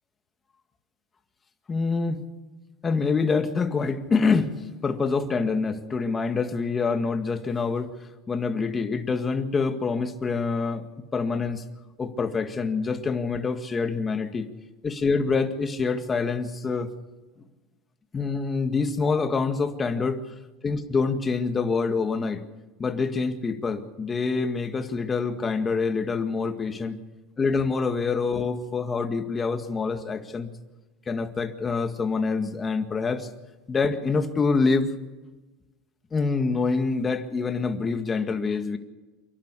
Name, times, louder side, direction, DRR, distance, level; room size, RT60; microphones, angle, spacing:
voice 1, 1.7-2.2 2.8-7.9 8.3-10.9 11.1-11.6 12.0-14.5 14.8-16.9 18.1-20.2 20.6-22.4 22.8-27.0 27.4-30.5 31.1-33.3 33.7-34.9 36.1-38.8, left 4 dB, 20° left, 7 dB, 2.0 m, -26 dB
28.0 x 12.0 x 8.4 m, 1.2 s
supercardioid pair, 135°, 0 cm